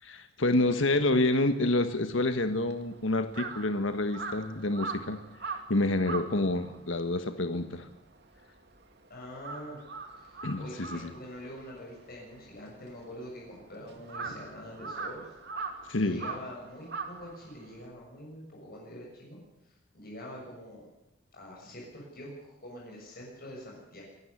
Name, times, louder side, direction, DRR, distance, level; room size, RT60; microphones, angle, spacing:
voice 1, 0.0-5.2 5.7-7.9 10.4-11.1 15.9-16.2, left 2 dB, 75° left, 8 dB, 1.5 m, -28 dB
Crow, 2.4-8.9 9.2-17.9, right 4 dB, 55° right, 2.5 m, -41 dB
voice 2, 9.1-9.8 10.1-15.4 16.0-20.9 21.3-24.0, equal, 50° left, -3 dB, 7.1 m, -45 dB
25.5 x 12.5 x 9.8 m, 0.90 s
head